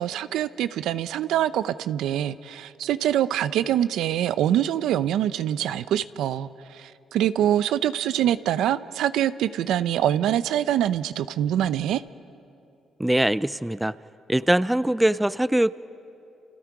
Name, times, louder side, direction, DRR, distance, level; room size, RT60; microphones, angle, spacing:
voice 1, 0.0-12.0, right 11 dB, 85° right, 14 dB, 0.6 m, -24 dB
voice 2, 13.0-14.0 14.3-15.8, right 1 dB, 5° right, 16 dB, 0.5 m, -22 dB
29.5 x 29.5 x 4.8 m, 2.7 s
cardioid pair, 90°, 0 cm